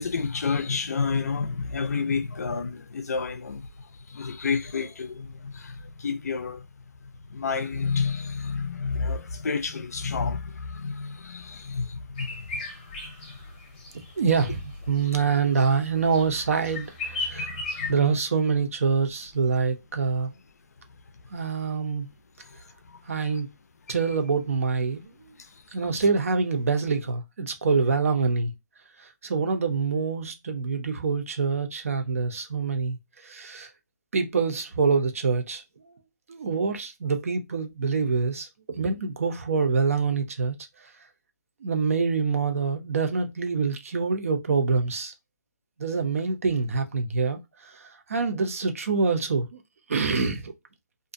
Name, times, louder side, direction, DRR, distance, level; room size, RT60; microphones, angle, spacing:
voice 1, 0.0-6.7 7.0-12.6 13.0-13.4 15.1-15.2 17.3-18.2 22.4-23.4 23.9-24.0 25.4-25.6, left 5 dB, 55° left, 0.5 m, -31 dB
sound 1, 12.2-17.9, left 3 dB, 25° left, 0.7 m, -37 dB
voice 2, 14.2-14.6 14.9-17.5 17.9-20.4 21.3-22.1 23.1-23.5 23.9-25.1 25.7-28.5 29.0-33.0 33.2-33.7 34.1-35.6 36.3-40.5 41.6-45.1 45.8-49.6 49.9-50.5, right 5 dB, 50° right, 0.5 m, -25 dB
2.5 x 2.1 x 2.5 m
hypercardioid pair, 170°, 10 cm